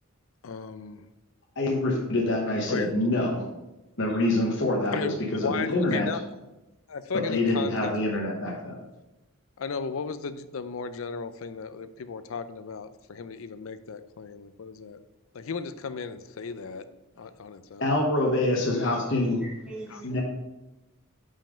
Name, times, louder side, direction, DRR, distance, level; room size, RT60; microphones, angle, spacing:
voice 1, 0.4-1.1 2.7-2.9 4.9-6.2 6.9-7.9 9.6-15.0 15.3-16.8 17.2-18.1 19.9-20.0, left 5 dB, 75° left, 12 dB, 0.5 m, -35 dB
voice 2, 1.6-3.4 4.0-6.1 7.3-8.7 17.8-19.4 20.0-20.2, left 1 dB, 60° left, -2 dB, 1.1 m, -26 dB
voice 3, 19.4-20.2, right 2 dB, 5° right, -6 dB, 1.7 m, -42 dB
5.6 x 5.4 x 5.0 m, 0.98 s
head